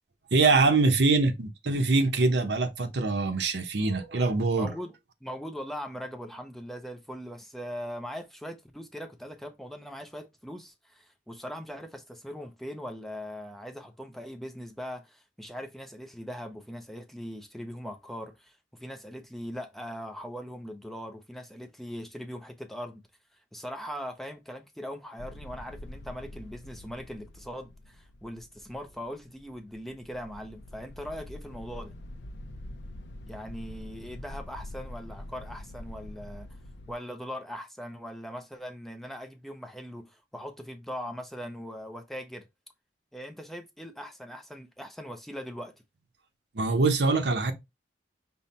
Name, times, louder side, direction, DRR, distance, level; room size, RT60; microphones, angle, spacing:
voice 1, 0.3-4.7 46.5-47.5, right 3 dB, 65° right, 0.7 m, -24 dB
voice 2, 4.5-23.0 23.3-32.0 33.3-36.5 36.9-42.5 43.1-45.7, equal, ahead, 0.5 m, -40 dB
sound 1, 25.2-37.0, left 1 dB, 70° left, 0.5 m, -45 dB
5.5 x 2.1 x 4.0 m
head